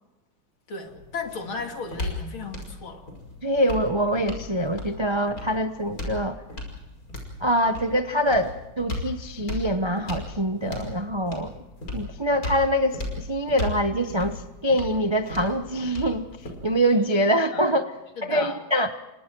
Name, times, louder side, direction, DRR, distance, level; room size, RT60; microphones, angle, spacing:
voice 1, 0.7-3.0 17.5-17.7 18.2-18.6, left 4 dB, 75° left, 4 dB, 3.4 m, -35 dB
sound 1, 0.8-16.9, left 2 dB, 40° left, 5.9 m, -36 dB
voice 2, 3.4-6.4 7.4-11.5 11.9-16.3 16.6-17.8 18.2-18.9, equal, 50° right, 8 dB, 0.3 m, -24 dB
29.0 x 24.5 x 4.7 m, 1.0 s
omnidirectional pair, 2.3 m